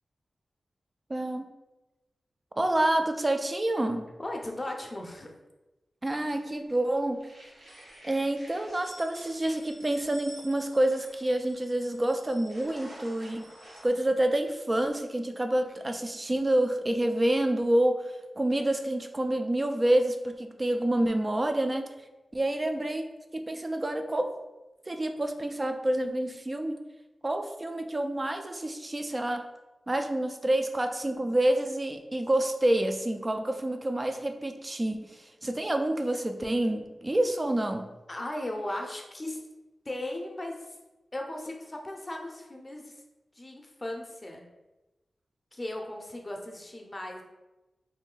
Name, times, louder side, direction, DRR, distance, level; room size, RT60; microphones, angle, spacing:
voice 1, 1.1-1.5 2.6-4.1 6.0-7.2 8.0-13.5 13.8-21.9 22.3-24.4 24.9-26.8 27.2-29.5 29.9-37.9, right 1 dB, 25° right, 6 dB, 0.4 m, -28 dB
voice 2, 4.2-5.3 38.1-39.4 39.8-40.8 41.1-42.9 43.3-44.4 45.5-47.2, left 1 dB, 25° left, 1 dB, 0.6 m, -37 dB
sound 1, 6.1-6.8 7.1-13.9, right 1 dB, 80° right, 1.1 m, -50 dB
3.1 x 2.6 x 3.8 m, 1.1 s
wide cardioid pair, 90°, 0 cm